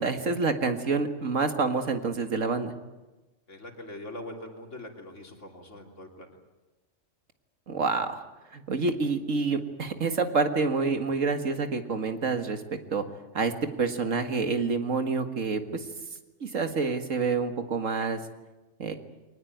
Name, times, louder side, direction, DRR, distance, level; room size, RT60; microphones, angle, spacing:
voice 1, 0.0-2.7 7.7-8.2 8.5-12.6 12.9-13.0 13.3-13.5 13.8-15.9 16.4-18.2 18.8-18.9, right 4 dB, 85° right, 7 dB, 2.2 m, -27 dB
voice 2, 3.5-6.3, left 1 dB, 70° left, 2 dB, 3.5 m, -42 dB
23.0 x 19.5 x 9.4 m, 1.1 s
omnidirectional pair, 1.3 m